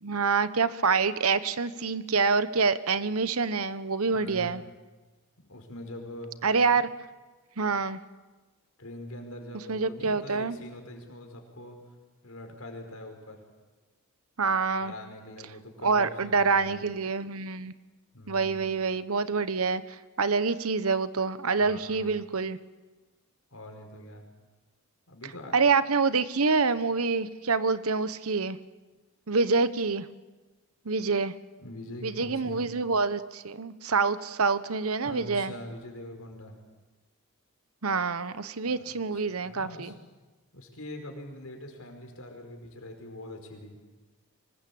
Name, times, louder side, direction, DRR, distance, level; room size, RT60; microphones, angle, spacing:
voice 1, 0.0-4.6 6.4-6.9 7.6-8.0 9.7-10.6 14.4-14.9 15.8-17.7 18.3-22.6 25.5-28.6 29.3-30.1 30.8-31.3 32.0-35.5 37.8-39.9, right 4 dB, 75° right, 14 dB, 1.1 m, -26 dB
voice 2, 4.1-4.6 5.5-6.3 6.7-6.8 8.8-11.8 12.2-13.4 14.8-16.7 18.1-18.7 21.6-22.1 23.5-24.2 25.1-25.6 31.6-32.6 35.0-36.6 38.7-38.9 39.3-39.9 40.5-43.7, left 1 dB, 70° left, 3 dB, 5.1 m, -43 dB
25.0 x 20.5 x 8.7 m, 1.2 s
head